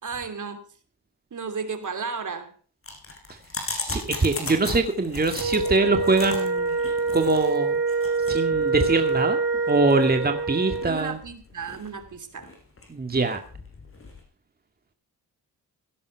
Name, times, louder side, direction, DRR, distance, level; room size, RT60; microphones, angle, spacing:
voice 1, 0.0-0.6 1.3-2.5 10.8-12.5, right 5 dB, 50° right, 9 dB, 3.0 m, -33 dB
sound 1, 2.8-14.2, left 3 dB, 35° left, 5.7 m, -38 dB
voice 2, 3.9-6.8 7.1-7.8 8.3-9.4 9.7-11.2 12.9-13.4, right 3 dB, 25° right, 5 dB, 2.1 m, -23 dB
Wind instrument woodwind instrument, 5.3-11.0, right 4 dB, 70° right, 4.8 m, -25 dB
17.0 x 11.0 x 4.7 m, 0.42 s
cardioid pair, 75°, 38 cm